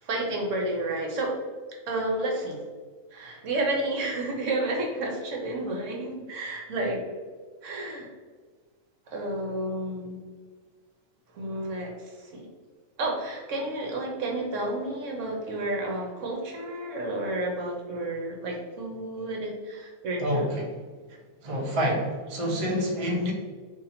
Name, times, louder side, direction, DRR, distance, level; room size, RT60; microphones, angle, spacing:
voice 1, 0.0-1.4 1.9-2.6 3.1-7.0 7.6-8.1 9.1-10.2 11.3-12.4 13.0-20.5, right 2 dB, 65° right, 0 dB, 1.0 m, -31 dB
voice 2, 20.2-20.7 21.4-23.3, equal, 40° right, -2 dB, 0.5 m, -27 dB
2.7 x 2.7 x 4.1 m, 1.5 s
omnidirectional pair, 1.6 m